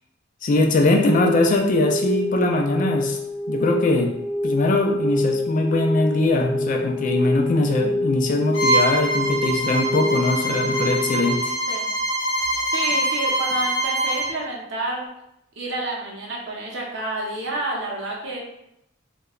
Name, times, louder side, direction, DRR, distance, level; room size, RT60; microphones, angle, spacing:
voice 1, 0.4-3.2 3.5-4.1 4.4-11.5, left 2 dB, 40° left, 3 dB, 0.3 m, -21 dB
sound 1, 0.9-11.3, left 2 dB, 15° right, 0.8 m, -27 dB
Bowed string instrument, 8.5-14.3, right 1 dB, 75° left, 0.8 m, -24 dB
voice 2, 12.7-15.1 15.6-18.4, right 2 dB, 60° right, -2 dB, 0.6 m, -29 dB
2.8 x 2.1 x 2.3 m, 0.81 s
head